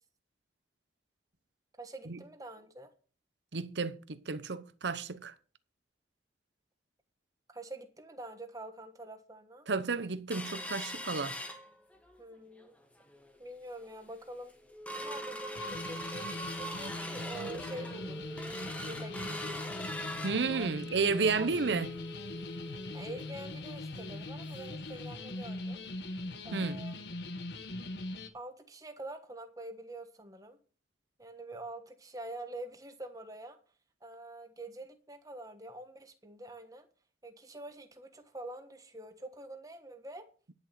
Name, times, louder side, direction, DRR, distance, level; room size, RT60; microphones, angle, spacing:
voice 1, 1.8-2.9 7.5-9.7 12.2-12.7 13.4-14.6 14.9-16.3 16.6-18.3 18.8-19.8 20.3-20.7 21.2-21.5 22.9-25.8 26.4-27.0 28.3-30.6 31.2-33.6 34.0-36.9 37.2-40.3, right 1 dB, 20° right, 1.3 m, -46 dB
voice 2, 3.5-5.3 9.7-11.3 20.2-21.9 26.5-26.8, right 4 dB, 85° right, 0.8 m, -32 dB
sound 1, 10.3-12.2 12.6-12.7 13.0-13.4 13.9-14.0 14.3-24.8 25.1-25.2 25.6-25.8 26.3-26.4, left 1 dB, 10° left, 1.4 m, -42 dB
sound 2, 15.6-28.3, left 2 dB, 75° left, 1.3 m, -41 dB
11.0 x 6.7 x 6.7 m
head